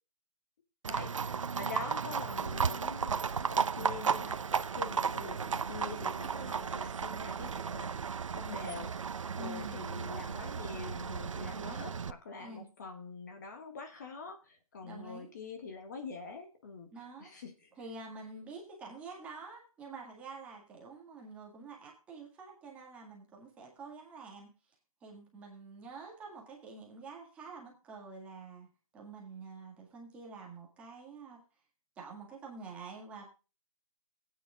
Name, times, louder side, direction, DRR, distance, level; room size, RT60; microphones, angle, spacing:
Livestock farm animals working animals, 0.8-12.1, right 6 dB, 60° right, 0.8 m, -34 dB
voice 1, 0.9-8.0 8.3-16.9 17.2-17.7, left 4 dB, 30° left, 5 dB, 1.6 m, -45 dB
voice 2, 9.4-9.8 11.5-11.9 12.4-12.7 14.8-15.3 16.9-17.3 17.7-24.5 25.0-28.7 28.9-31.4 32.0-33.2, right 4 dB, 5° right, -1 dB, 1.7 m, -48 dB
18.0 x 9.1 x 2.3 m, 0.31 s
hypercardioid pair, 170°, 18 cm